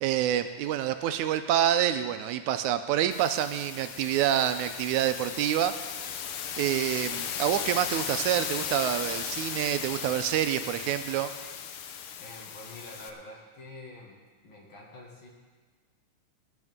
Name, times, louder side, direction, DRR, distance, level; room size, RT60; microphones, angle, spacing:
voice 1, 0.0-5.7 6.6-11.3, right 11 dB, 85° right, 10 dB, 2.0 m, -27 dB
sound 1, 3.1-13.1, left 8 dB, 90° left, 1.2 m, -36 dB
voice 2, 12.2-14.2 14.4-15.3, left 2 dB, 45° left, -2 dB, 2.5 m, -46 dB
19.0 x 10.5 x 3.6 m, 1.4 s
omnidirectional pair, 3.5 m